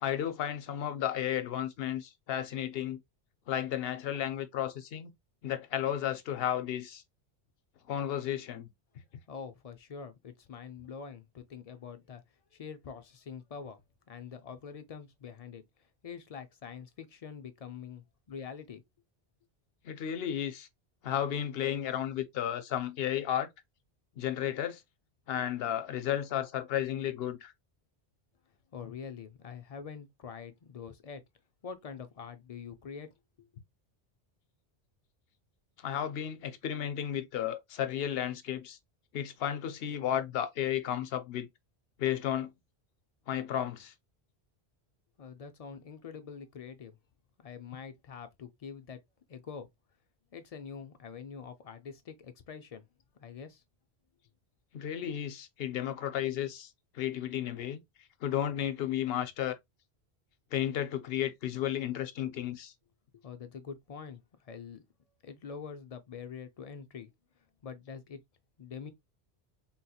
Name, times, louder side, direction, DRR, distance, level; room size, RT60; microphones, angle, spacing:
voice 1, 0.0-3.0 3.5-5.1 5.4-7.0 7.9-8.7 19.8-20.7 21.0-23.5 24.2-24.8 25.3-27.5 35.8-38.8 39.1-41.5 42.0-42.5 43.3-43.9 54.7-56.7 56.9-57.8 58.2-59.6 60.5-62.7, left 10 dB, 70° left, 0.8 m, -33 dB
voice 2, 9.3-12.2 12.5-13.8 14.1-15.6 16.0-18.8 28.7-31.2 31.6-33.1 33.4-33.5 45.2-47.0 47.4-49.0 49.3-49.7 50.3-52.9 53.2-53.6 63.2-64.8 65.2-67.1 67.6-68.2 68.6-68.9, left 6 dB, 55° left, 0.4 m, -45 dB
3.7 x 2.8 x 2.3 m
omnidirectional pair, 1.1 m